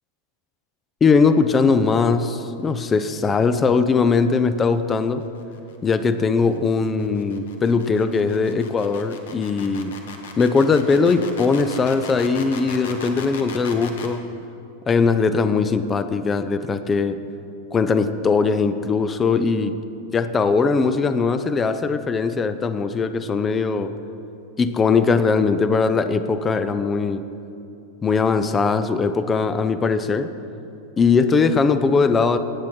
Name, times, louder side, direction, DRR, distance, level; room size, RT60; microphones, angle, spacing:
voice 1, 1.0-5.3 5.8-10.0 10.4-14.3 14.9-17.2 17.7-19.8 20.1-23.9 24.6-27.2 28.0-30.3 31.0-32.4, left 4 dB, 20° left, 11 dB, 0.5 m, -20 dB
Vibrator Electromagnetic Sounds, 4.9-14.2, left 5 dB, 60° left, 1.3 m, -38 dB
17.5 x 8.4 x 4.3 m, 2.8 s
figure-of-eight pair, 90°, 0 cm